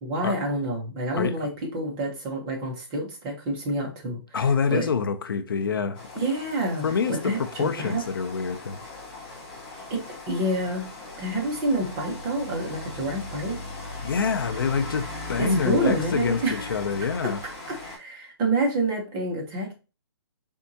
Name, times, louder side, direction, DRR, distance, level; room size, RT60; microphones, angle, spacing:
voice 1, 0.0-4.4 4.7-4.9 6.1-8.0 9.7-10.8 11.2-13.6 15.4-16.8 17.2-19.7, right 1 dB, 15° right, 0.8 m, -28 dB
voice 2, 4.3-6.1 6.8-8.8 14.0-17.4, left 5 dB, 55° left, 0.5 m, -26 dB
Rain, 5.9-18.0, left 2 dB, 20° left, 1.9 m, -39 dB
4.4 x 3.5 x 2.7 m
hypercardioid pair, 170°, 14 cm